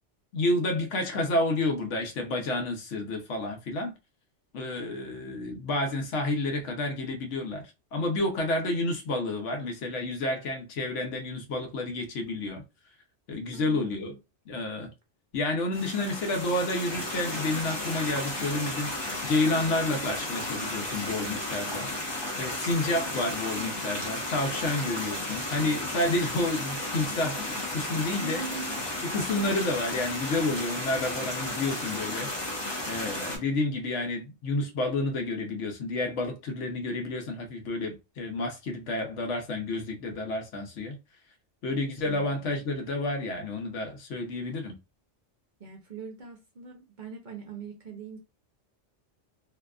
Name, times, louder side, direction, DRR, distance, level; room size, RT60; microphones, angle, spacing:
voice 1, 0.3-3.9 4.5-7.6 7.9-12.6 13.3-14.1 14.5-14.9 15.3-18.9 19.2-21.9 22.4-28.4 29.0-32.3 32.9-41.0 41.6-44.8, left 2 dB, 80° left, 1.1 m, -30 dB
voice 2, 13.5-14.2 28.2-29.0 42.0-42.7 45.6-48.2, right 4 dB, 50° right, 0.6 m, -42 dB
sound 1, 15.7-33.4, left 1 dB, 25° left, 0.8 m, -34 dB
2.7 x 2.3 x 2.3 m
omnidirectional pair, 1.2 m